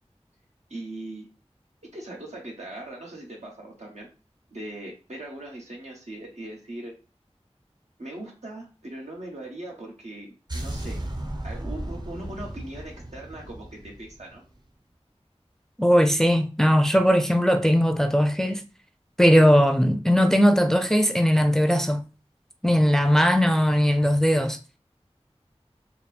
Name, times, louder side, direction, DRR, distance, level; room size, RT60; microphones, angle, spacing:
voice 1, 0.7-1.3 1.9-4.1 4.5-6.9 8.0-11.0 11.4-14.4, right 1 dB, 85° right, 1.4 m, -39 dB
sound 1, 10.5-14.6, right 1 dB, 40° right, 0.7 m, -35 dB
voice 2, 15.8-18.6 19.2-22.0 22.6-24.6, equal, 5° left, 0.4 m, -19 dB
4.1 x 2.3 x 3.5 m
wide cardioid pair, 45°, 11 cm